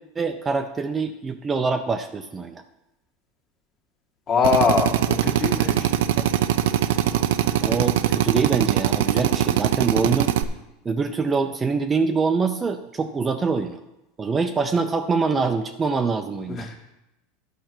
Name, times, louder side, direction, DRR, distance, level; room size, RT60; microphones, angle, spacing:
voice 1, 0.2-2.6 6.2-6.3 7.6-10.3 10.8-13.8 14.2-16.7, right 4 dB, 20° right, 6 dB, 0.5 m, -24 dB
voice 2, 4.3-5.9 16.5-16.7, left 5 dB, 35° left, 1 dB, 1.7 m, -23 dB
Drill, 4.4-10.4, right 11 dB, 80° right, 0.5 m, -22 dB
10.5 x 5.6 x 6.1 m, 0.93 s
supercardioid pair, 130°, 0 cm